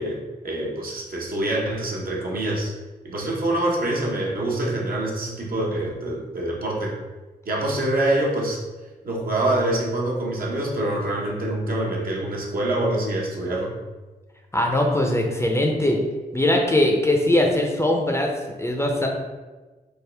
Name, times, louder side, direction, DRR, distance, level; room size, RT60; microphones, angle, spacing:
voice 1, 0.0-2.7 3.0-7.0 7.5-8.6 9.0-13.7, right 1 dB, 60° right, -2 dB, 0.8 m, -25 dB
voice 2, 14.5-16.0 16.3-18.3 18.6-19.1, left 1 dB, 15° left, 1 dB, 0.5 m, -21 dB
3.5 x 2.1 x 3.3 m, 1.2 s
cardioid pair, 50°, 17 cm